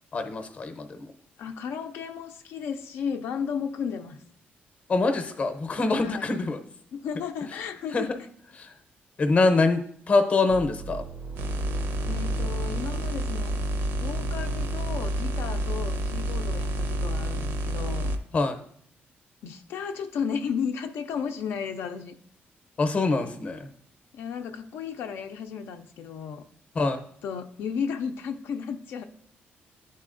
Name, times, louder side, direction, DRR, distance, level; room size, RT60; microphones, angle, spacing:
voice 1, 0.1-1.1 4.9-6.6 7.9-8.2 8.6-8.7 9.2-9.8 10.1-11.0 18.3-18.6 22.8-23.7 26.7-27.0, left 3 dB, 35° left, 7 dB, 0.6 m, -24 dB
voice 2, 1.4-4.2 6.0-6.3 6.9-8.1 12.1-13.6 14.0-18.1 19.4-22.1 24.1-26.4 27.2-29.0, left 6 dB, 80° left, 5 dB, 0.4 m, -34 dB
sound 1, 10.5-17.9, right 4 dB, 40° right, 0.3 m, -39 dB
sound 2, 11.3-18.2, equal, 75° right, 0.6 m, -29 dB
11.5 x 4.1 x 2.5 m, 0.64 s
cardioid pair, 160°, 4 cm